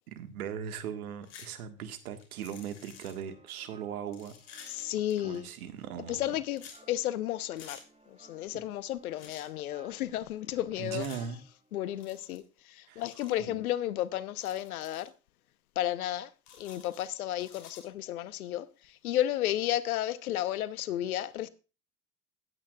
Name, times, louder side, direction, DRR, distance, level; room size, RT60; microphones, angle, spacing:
voice 1, 0.1-4.3 4.8-4.9 5.2-6.3 8.5-8.6 10.8-11.4 12.9-13.6, right 8 dB, 75° right, 1.8 m, -39 dB
sound 1, 1.2-1.5 1.8-3.3 4.1-5.4 6.5-6.8 7.5-7.8 9.2-9.5 11.0-11.3 12.0-12.4 13.0-13.4 14.3-15.1 16.5-17.8, left 7 dB, 60° left, 3.4 m, -51 dB
sound 2, 2.9-12.4, right 2 dB, 15° right, 2.8 m, -61 dB
voice 2, 4.7-5.4 6.1-6.6 6.9-7.8 8.1-11.1 11.7-15.1 15.8-16.3 16.6-21.5, left 13 dB, 80° left, 1.0 m, -33 dB
17.5 x 8.9 x 2.4 m
hypercardioid pair, 85°, 43 cm